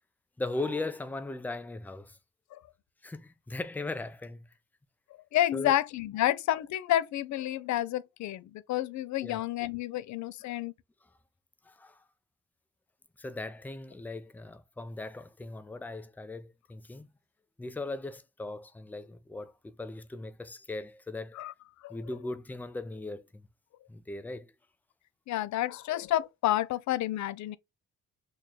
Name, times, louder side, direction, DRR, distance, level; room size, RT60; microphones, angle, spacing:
voice 1, 0.4-2.2 3.0-4.5 5.5-5.7 9.2-9.4 11.6-12.0 13.2-17.1 17.6-21.4 21.9-23.5 23.9-24.5, left 2 dB, 5° left, 0.4 m, -38 dB
voice 2, 5.3-10.7 21.4-21.5 21.8-22.0 25.3-27.6, left 13 dB, 70° left, 0.5 m, -30 dB
3.0 x 2.3 x 4.0 m
cardioid pair, 90°, 30 cm